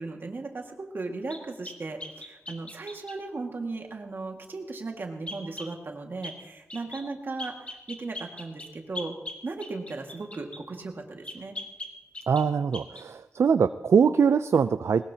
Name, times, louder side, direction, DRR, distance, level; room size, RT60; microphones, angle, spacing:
voice 1, 0.0-9.1 9.4-11.6, right 3 dB, 45° right, 3 dB, 1.9 m, -36 dB
sound 1, 1.3-3.2 5.3-5.7 6.2-6.4 6.7-7.1 7.4-10.6 11.2-12.5 12.7-13.1, left 2 dB, 25° left, 1.4 m, -40 dB
voice 2, 12.3-15.1, right 6 dB, 65° right, 12 dB, 0.4 m, -23 dB
21.0 x 19.0 x 2.8 m, 1.0 s
wide cardioid pair, 140°, 5 cm